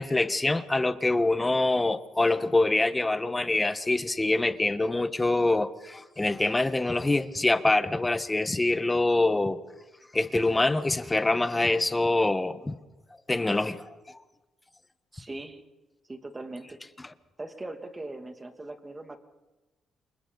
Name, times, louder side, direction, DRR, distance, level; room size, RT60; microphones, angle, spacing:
voice 1, 0.0-9.6 10.1-12.8 13.3-13.9, left 2 dB, 15° left, 1.3 m, -25 dB
voice 2, 15.1-15.6 16.1-16.8 17.4-19.2, right 2 dB, 20° right, 2.4 m, -40 dB
29.0 x 28.0 x 4.0 m
cardioid pair, 90°, 0 cm